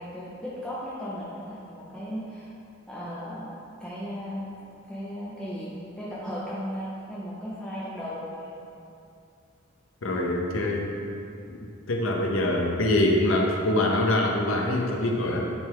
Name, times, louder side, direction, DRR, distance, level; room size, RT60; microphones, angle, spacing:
voice 1, 0.0-2.5 2.9-3.5 3.8-4.5 4.9-8.5, equal, 5° left, -9 dB, 0.7 m, -36 dB
voice 2, 10.0-11.1 11.9-15.4, left 1 dB, 80° left, 0 dB, 0.8 m, -24 dB
9.8 x 3.4 x 3.5 m, 2.6 s
head